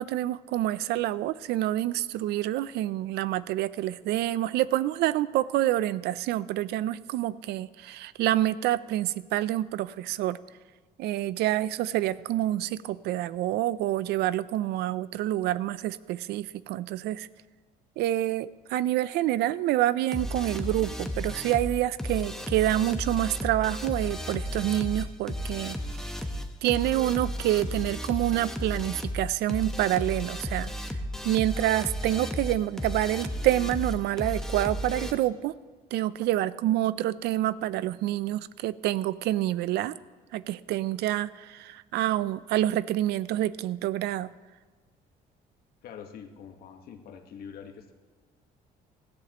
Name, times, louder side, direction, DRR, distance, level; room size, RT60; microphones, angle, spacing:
voice 1, 0.0-10.4 11.0-17.3 18.0-26.1 26.6-30.7 31.2-35.6 35.9-39.9 40.3-44.3, right 14 dB, 80° right, 17 dB, 0.5 m, -27 dB
sound 1, 20.1-35.1, equal, 5° left, 1.0 m, -34 dB
voice 2, 45.8-47.9, left 7 dB, 65° left, 5 dB, 1.4 m, -45 dB
18.0 x 14.0 x 3.0 m, 1.5 s
cardioid pair, 110°, 17 cm